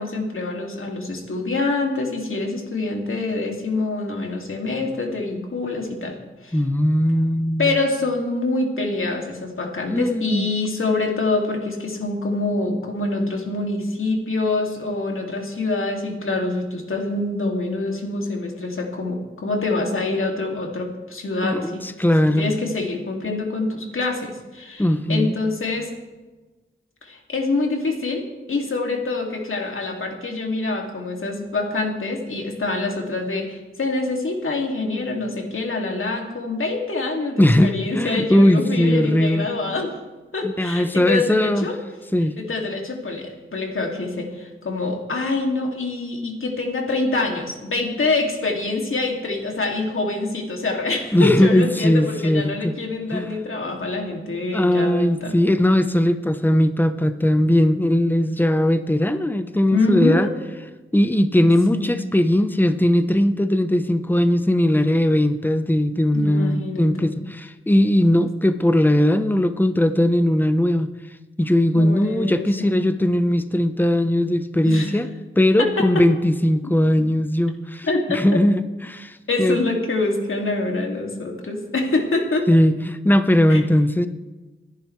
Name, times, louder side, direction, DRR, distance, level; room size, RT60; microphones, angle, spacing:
voice 1, 0.0-6.2 6.4-6.6 7.6-21.8 22.4-24.8 25.1-25.9 27.0-39.9 40.3-41.8 42.4-55.3 59.7-60.3 61.7-62.0 66.1-67.1 71.7-72.8 74.6-74.9 75.6-76.0 77.9-78.0 79.3-82.5 83.5-83.6, left 3 dB, 75° left, 1 dB, 2.6 m, -25 dB
voice 2, 6.5-7.7 9.9-10.5 21.4-22.6 24.8-25.4 37.4-39.5 40.4-41.7 42.1-42.4 51.1-52.7 53.1-53.4 54.5-60.3 60.9-70.9 71.4-75.1 75.4-79.6 82.5-84.1, left 1 dB, 10° left, 9 dB, 0.9 m, -19 dB
29.0 x 10.5 x 3.3 m, 1.2 s
cardioid pair, 50°, 21 cm